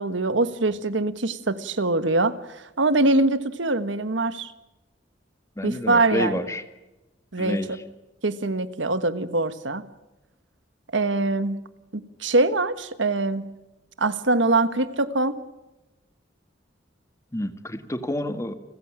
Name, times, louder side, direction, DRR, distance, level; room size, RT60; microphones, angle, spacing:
voice 1, 0.0-4.5 5.6-6.4 7.3-7.8 8.2-9.8 10.9-11.6 11.9-13.5 14.0-15.4, right 2 dB, 85° right, 12 dB, 1.5 m, -23 dB
voice 2, 5.6-6.6 7.4-7.7 17.3-18.5, left 1 dB, 15° left, 9 dB, 1.7 m, -29 dB
30.0 x 15.0 x 8.8 m, 0.99 s
head